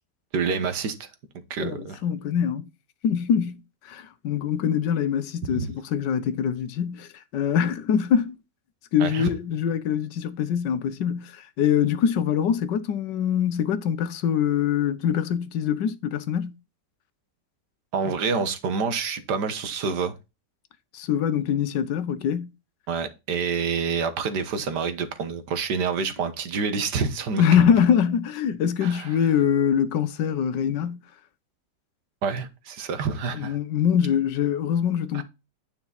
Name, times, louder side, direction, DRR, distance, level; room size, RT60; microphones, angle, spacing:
voice 1, 0.3-1.1 1.5-2.0 5.5-5.7 9.0-9.2 17.9-20.1 22.9-27.4 28.8-29.1 32.2-33.6 35.1-35.2, right 5 dB, 75° right, 1.8 m, -27 dB
voice 2, 1.6-2.7 3.0-8.4 8.9-16.6 20.9-22.5 27.4-31.0 33.3-35.2, left 8 dB, 80° left, 1.5 m, -24 dB
9.7 x 5.5 x 4.0 m
omnidirectional pair, 1.9 m